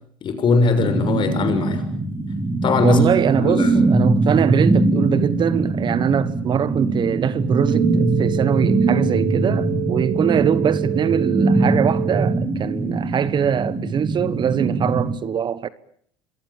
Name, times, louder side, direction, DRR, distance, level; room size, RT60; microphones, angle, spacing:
voice 1, 0.2-1.8 2.6-3.0 3.4-3.9, left 4 dB, 40° left, 6.7 m, -20 dB
sound 1, 0.8-15.1, right 3 dB, 20° right, 5.7 m, -22 dB
voice 2, 2.8-15.7, right 8 dB, 40° right, 1.3 m, -22 dB
sound 2, 7.4-12.4, right 20 dB, 85° right, 1.5 m, -28 dB
27.5 x 23.5 x 7.2 m
supercardioid pair, 90°, 12 cm